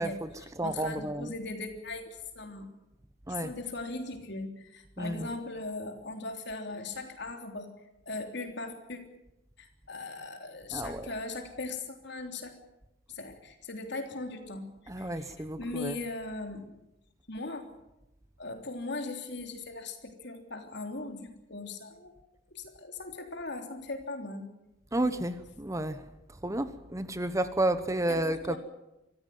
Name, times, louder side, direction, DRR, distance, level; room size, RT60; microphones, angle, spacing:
voice 1, 0.0-1.3 3.3-3.6 5.0-5.3 10.7-11.1 14.9-16.0 24.9-26.0 26.3-28.6, right 1 dB, 15° right, 1.0 m, -31 dB
voice 2, 0.6-2.0 2.3-2.7 3.3-7.7 8.0-9.0 9.6-12.5 13.1-14.7 15.0-15.3 15.6-16.7 17.3-17.7 18.4-22.1 22.5-24.5 28.1-28.6, left 3 dB, 60° left, 3.4 m, -39 dB
24.5 x 15.0 x 9.4 m
head